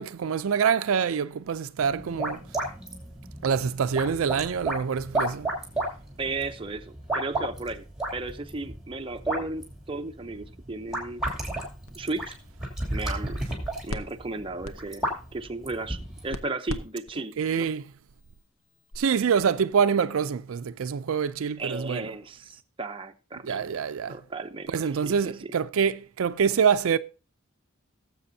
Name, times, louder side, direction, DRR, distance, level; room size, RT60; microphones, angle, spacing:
voice 1, 0.0-2.4 3.4-5.5 17.4-17.9 19.0-22.1 23.4-24.2 24.7-27.0, right 6 dB, 80° right, 0.4 m, -25 dB
sound 1, 1.9-16.3, right 1 dB, ahead, 2.7 m, -33 dB
voice 2, 6.2-7.8 8.1-11.2 11.9-12.3 12.9-13.4 13.8-15.1 15.3-17.7 21.6-23.6 24.1-25.5, right 3 dB, 25° right, 0.7 m, -35 dB
sound 2, 11.4-19.0, left 1 dB, 70° left, 0.9 m, -43 dB
18.0 x 7.7 x 2.7 m
head